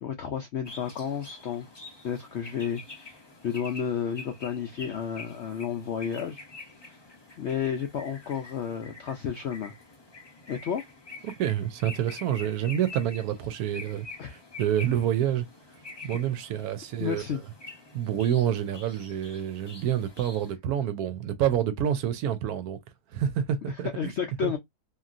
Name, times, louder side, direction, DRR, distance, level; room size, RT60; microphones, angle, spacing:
voice 1, 0.0-1.7 2.0-3.2 3.4-6.4 6.9-7.0 7.4-9.7 10.5-10.8 14.2-14.4 17.0-17.4 23.7-24.6, left 8 dB, 75° left, 0.6 m, -32 dB
sound 1, 0.6-20.5, left 3 dB, 30° left, 0.4 m, -46 dB
voice 2, 11.2-15.5 16.0-17.2 17.9-22.8 23.1-24.1 24.4-24.5, right 10 dB, 75° right, 1.0 m, -28 dB
3.0 x 2.5 x 2.5 m
omnidirectional pair, 1.7 m